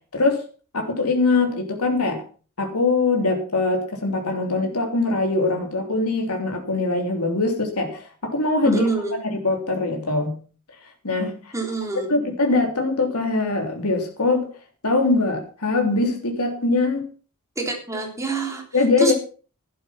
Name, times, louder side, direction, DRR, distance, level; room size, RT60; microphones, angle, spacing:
voice 1, 0.1-0.4 0.7-2.2 2.6-8.8 9.2-10.3 11.0-11.5 12.1-14.5 14.8-17.0 18.7-19.1, left 3 dB, 85° left, 3 dB, 3.3 m, -22 dB
voice 2, 8.6-9.2 11.5-12.1 17.6-18.6 19.0-19.1, right 3 dB, 15° right, 1 dB, 3.6 m, -26 dB
12.0 x 11.0 x 5.8 m, 0.38 s
head